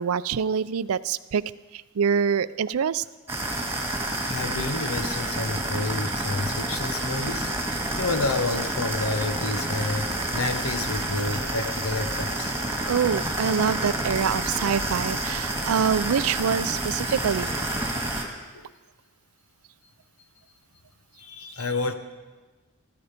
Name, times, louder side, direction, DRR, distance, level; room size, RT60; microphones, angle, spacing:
voice 1, 0.0-1.4 1.7-3.0 12.9-17.5, right 7 dB, 75° right, 17 dB, 0.4 m, -25 dB
sound 1, 3.3-18.2, right 1 dB, 10° right, 2.0 m, -29 dB
voice 2, 4.2-12.5 18.5-18.7 21.1-21.9, left 3 dB, 85° left, 8 dB, 1.2 m, -30 dB
15.0 x 14.0 x 5.2 m, 1.3 s
head